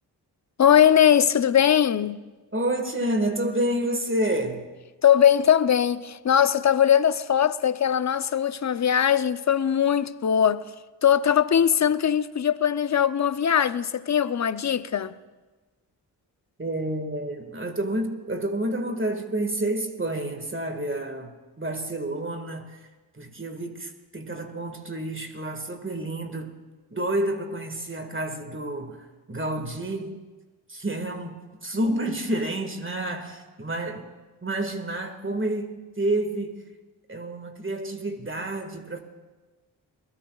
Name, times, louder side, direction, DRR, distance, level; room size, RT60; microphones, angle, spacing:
voice 1, 0.6-2.2 5.0-10.6 11.0-15.1, left 9 dB, 40° left, 0.7 m, -20 dB
voice 2, 2.5-4.7 16.6-22.8 23.1-26.5 26.9-30.2 30.7-34.1 34.4-36.7 37.1-39.0, right 1 dB, 30° right, 1.9 m, -29 dB
22.5 x 17.0 x 2.4 m
supercardioid pair, 40°, 44 cm